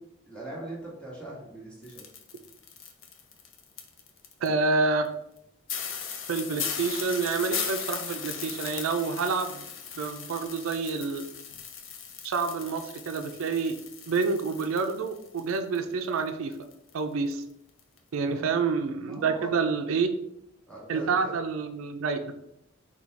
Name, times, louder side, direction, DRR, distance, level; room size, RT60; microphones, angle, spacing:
voice 1, 0.3-2.1 18.2-18.5 19.1-19.5 20.7-21.4, right 1 dB, 5° left, -5 dB, 1.3 m, -41 dB
sound 1, 1.8-4.5 5.0-5.1 5.4-5.5 5.7-17.0 17.3-17.4 17.8-18.0, left 7 dB, 70° left, 0.6 m, -38 dB
voice 2, 4.4-5.1 6.3-9.6 10.0-11.2 12.2-13.8 14.1-16.5 16.9-17.4 18.1-20.1 20.9-22.2, right 4 dB, 85° right, 7 dB, 0.4 m, -28 dB
4.0 x 2.3 x 4.4 m, 0.78 s
head